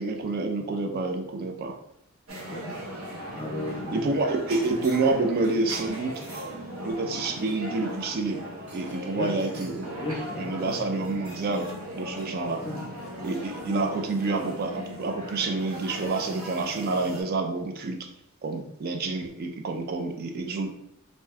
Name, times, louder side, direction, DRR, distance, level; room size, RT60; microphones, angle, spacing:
voice 1, 0.0-1.8 3.9-6.2 6.8-8.4 8.7-9.9 10.4-12.6 13.2-18.0 18.4-20.7, right 3 dB, 45° right, 4 dB, 0.4 m, -28 dB
sound 1, 2.3-17.2, equal, 70° right, 0.8 m, -38 dB
voice 2, 3.3-4.0 9.2-9.4 10.0-10.8 12.4-12.8, left 1 dB, 25° left, 1 dB, 0.5 m, -35 dB
2.6 x 2.2 x 3.3 m, 0.76 s
head